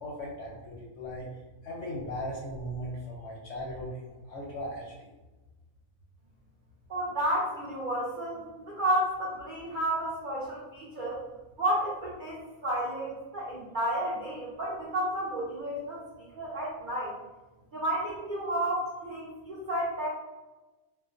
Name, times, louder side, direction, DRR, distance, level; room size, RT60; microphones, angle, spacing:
voice 1, 0.0-1.3 1.6-5.1, equal, 65° left, -4 dB, 0.7 m, -38 dB
voice 2, 6.9-11.2 11.6-16.0 16.4-17.1 17.7-20.1, right 1 dB, 70° right, -7 dB, 0.4 m, -31 dB
2.4 x 2.1 x 2.4 m, 1.1 s
omnidirectional pair, 1.5 m